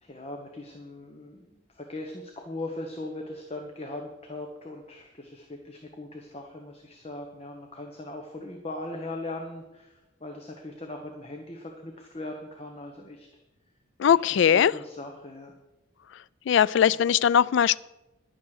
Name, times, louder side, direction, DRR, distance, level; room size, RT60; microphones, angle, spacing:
voice 1, 0.0-13.3 14.1-14.2 14.5-15.5, left 2 dB, 30° left, 3 dB, 1.1 m, -39 dB
voice 2, 14.0-14.7 16.5-17.8, left 8 dB, 60° left, 19 dB, 0.3 m, -20 dB
11.0 x 8.9 x 6.5 m, 1.0 s
head